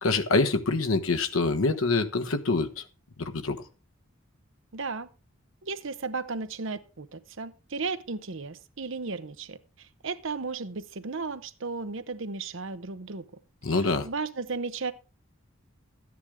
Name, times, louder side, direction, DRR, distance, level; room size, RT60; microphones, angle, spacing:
voice 1, 0.0-2.7 3.2-3.6 13.6-14.1, left 3 dB, 85° left, 1.2 m, -25 dB
voice 2, 4.7-5.1 5.6-13.3 13.7-14.9, right 4 dB, 65° right, 0.9 m, -35 dB
13.0 x 9.7 x 3.6 m
head